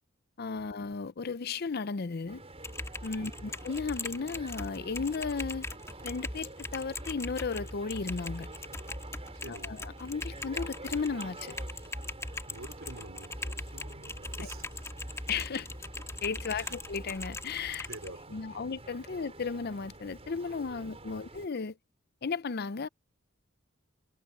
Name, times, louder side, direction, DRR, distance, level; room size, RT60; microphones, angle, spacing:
voice 1, 0.4-2.4 3.0-5.7 6.0-8.5 9.5-11.6 15.3-15.7 16.2-17.9 18.3-21.7 22.2-22.9, left 5 dB, 50° left, 0.6 m, -35 dB
sound 1, 2.3-21.5, right 2 dB, 30° right, 6.1 m, -49 dB
Typing, 2.6-18.1, left 2 dB, 15° left, 2.7 m, -40 dB
voice 2, 3.2-3.5 9.3-9.8 12.5-14.9 16.5-16.8 17.8-18.6, right 2 dB, 70° right, 4.0 m, -49 dB
head